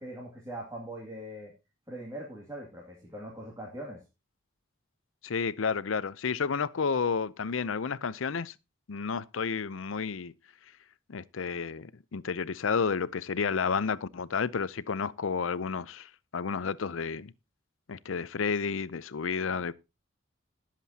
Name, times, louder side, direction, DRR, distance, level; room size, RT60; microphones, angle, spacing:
voice 1, 0.0-1.5 1.9-4.0, right 1 dB, 15° right, 2.3 m, -41 dB
voice 2, 5.2-8.5 8.9-10.3 11.1-17.3 17.9-19.7, left 5 dB, 90° left, 0.6 m, -31 dB
19.0 x 7.6 x 2.8 m
head